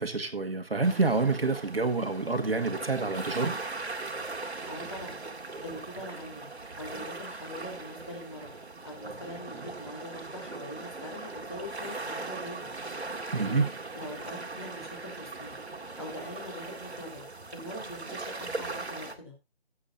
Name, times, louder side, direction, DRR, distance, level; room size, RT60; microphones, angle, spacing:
voice 1, 0.0-3.5 13.3-13.7, right 3 dB, 65° right, 2.0 m, -27 dB
sound 1, 0.8-19.2, right 3 dB, 80° right, 2.2 m, -39 dB
voice 2, 4.7-5.2 5.6-6.5 6.8-8.5 8.8-12.7 13.4-15.6 16.0-17.2 17.5-19.3, left 1 dB, 25° left, 3.5 m, -42 dB
17.0 x 8.0 x 2.7 m
figure-of-eight pair, 180°, 32 cm